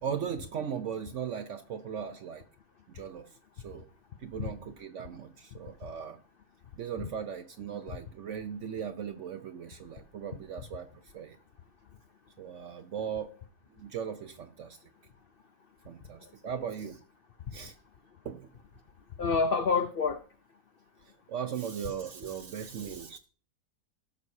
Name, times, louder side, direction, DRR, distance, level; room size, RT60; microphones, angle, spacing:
voice 1, 0.0-2.4 2.9-3.3 3.6-3.9 4.2-6.2 6.8-10.9 11.1-11.4 12.4-13.4 13.8-14.8 15.9-17.0 17.5-17.7 18.2-18.5 21.3-23.2, right 8 dB, 65° right, 0.7 m, -38 dB
voice 2, 19.2-20.2 22.6-23.2, left 4 dB, 75° left, 0.5 m, -29 dB
17.5 x 6.2 x 2.7 m
omnidirectional pair, 1.8 m